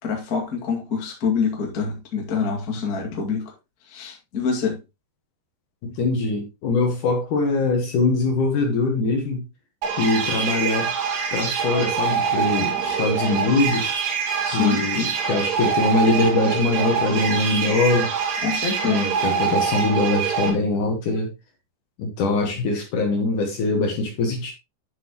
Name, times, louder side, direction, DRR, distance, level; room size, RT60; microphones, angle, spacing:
voice 1, 0.0-3.4 3.9-4.8 14.4-15.1 18.4-19.1, left 5 dB, 85° left, 0 dB, 0.8 m, -26 dB
voice 2, 5.8-9.4 10.0-10.9 11.3-13.9 14.5-18.1 18.8-21.3 22.0-24.5, left 3 dB, 65° left, 2 dB, 2.0 m, -22 dB
sound 1, 9.8-20.5, right 6 dB, 65° right, 3.6 m, -25 dB
9.3 x 6.9 x 3.0 m, 0.24 s
omnidirectional pair, 5.6 m